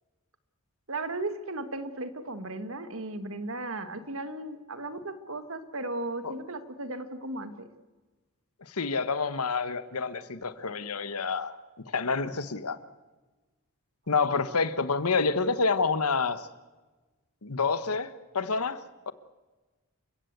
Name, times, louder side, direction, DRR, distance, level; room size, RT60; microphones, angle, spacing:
voice 1, 0.9-7.7, right 2 dB, 65° right, 1.7 m, -36 dB
voice 2, 8.7-11.6 11.9-12.8 14.1-16.5 17.4-18.8 19.1-19.2, left 4 dB, 85° left, 1.2 m, -28 dB
29.0 x 16.0 x 8.0 m
head